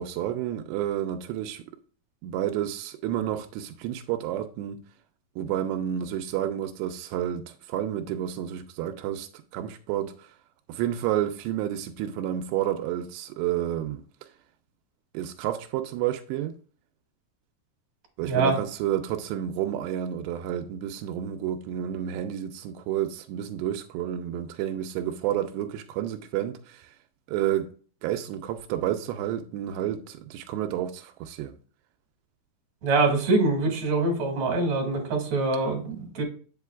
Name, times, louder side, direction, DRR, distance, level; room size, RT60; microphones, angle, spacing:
voice 1, 0.0-1.6 2.2-4.8 5.4-10.3 10.7-14.0 15.1-16.6 18.2-26.9 27.3-27.7 28.0-31.6, right 11 dB, 90° right, 2.8 m, -30 dB
voice 2, 18.2-18.6 32.8-36.2, right 3 dB, 45° right, 3.0 m, -24 dB
8.2 x 7.5 x 2.4 m
omnidirectional pair, 4.9 m